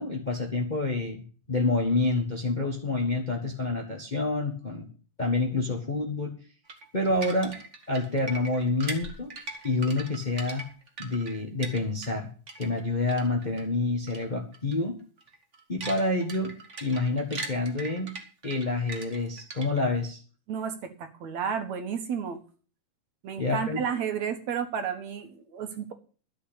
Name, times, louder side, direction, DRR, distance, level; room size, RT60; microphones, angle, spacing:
voice 1, 0.0-4.9 5.2-6.4 6.9-7.6 7.9-9.3 9.6-10.6 11.0-12.3 12.6-15.0 15.7-18.1 18.4-20.2 23.4-23.8, left 2 dB, 50° left, 2 dB, 0.5 m, -28 dB
sound 1, 6.7-12.2 12.5-13.6 14.1-14.3 14.5-14.7 15.2-20.0, right 2 dB, 30° right, 1.4 m, -40 dB
voice 2, 20.5-22.4 23.2-25.9, right 7 dB, 60° right, 7 dB, 2.7 m, -32 dB
12.5 x 5.7 x 8.4 m, 0.39 s
omnidirectional pair, 3.8 m